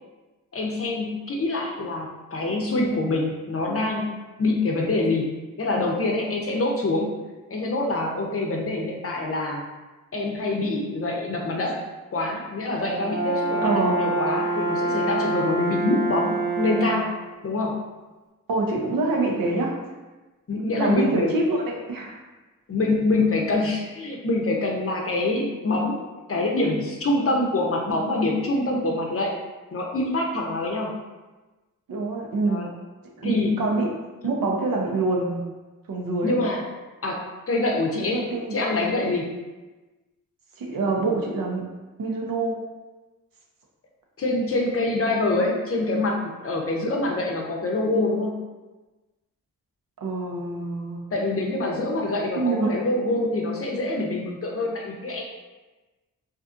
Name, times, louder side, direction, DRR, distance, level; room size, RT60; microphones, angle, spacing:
voice 1, 0.5-4.1 4.4-7.1 7.5-9.6 10.1-11.8 12.1-17.1 17.4-17.8 20.5-21.3 22.7-26.0 26.3-29.3 29.7-31.0 32.5-32.7 33.2-33.6 36.2-36.6 37.0-39.3 44.2-48.4 51.1-55.2, left 2 dB, 40° left, 0 dB, 0.6 m, -25 dB
Brass instrument, 12.8-17.2, right 2 dB, 25° right, 0.8 m, -26 dB
voice 2, 13.6-14.0 18.5-19.7 20.7-22.2 31.9-32.7 33.2-33.9 34.2-35.4 35.9-36.4 38.0-38.6 40.6-41.6 42.0-42.6 50.0-51.0 52.4-52.7, right 3 dB, 75° right, -1 dB, 0.6 m, -25 dB
2.6 x 2.4 x 2.5 m, 1.2 s
supercardioid pair, 40°, 35 cm